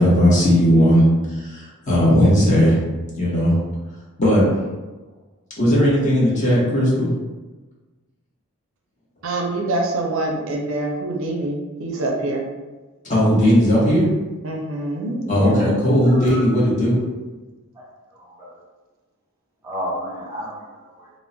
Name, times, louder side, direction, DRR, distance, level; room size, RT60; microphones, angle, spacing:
voice 1, 0.0-2.8 3.2-3.6 4.2-4.5 5.6-7.1 13.0-14.1 15.3-17.0, equal, 35° left, -6 dB, 0.8 m, -17 dB
voice 2, 9.2-12.5 14.4-15.8, right 2 dB, 65° right, 0 dB, 0.5 m, -25 dB
voice 3, 16.1-16.4 17.8-17.9 18.1-18.5 19.6-21.1, equal, 15° right, -6 dB, 0.6 m, -32 dB
2.2 x 2.0 x 3.7 m, 1.2 s
head